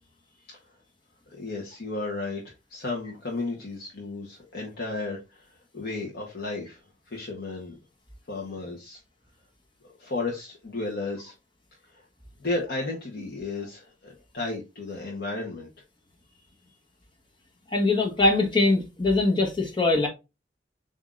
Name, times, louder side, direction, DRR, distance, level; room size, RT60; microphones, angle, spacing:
voice 1, 1.3-2.4 2.7-7.8 8.3-9.0 10.0-11.3 11.9-12.0 12.4-15.7, left 3 dB, 60° left, 1.0 m, -33 dB
voice 2, 17.7-20.1, left 2 dB, 25° left, 1.2 m, -22 dB
7.2 x 2.7 x 2.4 m
head